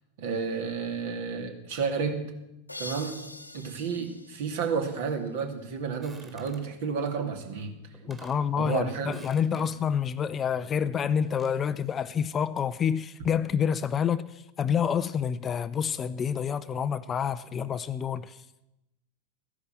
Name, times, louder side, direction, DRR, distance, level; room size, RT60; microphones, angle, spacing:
voice 1, 0.2-2.3 2.8-3.2 3.5-7.8 8.6-9.2 9.5-9.7, right 5 dB, 50° right, 2.4 m, -31 dB
sound 1, 2.7-5.4, left 2 dB, 85° left, 1.1 m, -44 dB
sound 2, 6.0-6.7 7.6-7.7 7.9-8.5 9.0-9.8 11.0-11.6, right 2 dB, 15° right, 2.6 m, -53 dB
voice 2, 8.1-18.4, left 7 dB, 25° left, 0.5 m, -28 dB
14.0 x 11.0 x 7.4 m
figure-of-eight pair, 90°, 0 cm